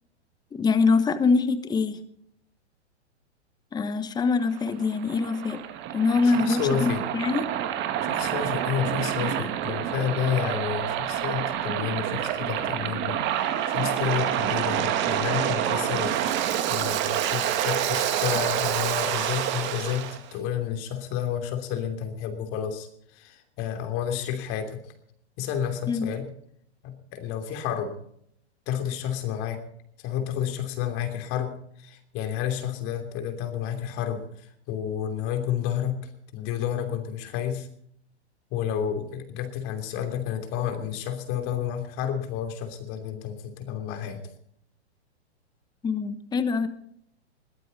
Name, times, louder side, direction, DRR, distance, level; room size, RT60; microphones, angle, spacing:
voice 1, 0.5-2.0 3.7-5.6 5.9-7.5 25.9-26.1 45.8-46.7, left 4 dB, 10° left, 12 dB, 1.1 m, -24 dB
Waves surf, 4.4-20.2, right 10 dB, 35° right, 1.9 m, -28 dB
voice 2, 6.2-7.0 8.0-24.8 25.4-26.3 26.8-27.9 28.7-29.6 30.0-36.0 36.3-37.7 38.5-44.2, left 9 dB, 40° left, 6 dB, 3.0 m, -30 dB
21.5 x 14.5 x 4.1 m, 0.69 s
hypercardioid pair, 120°, 34 cm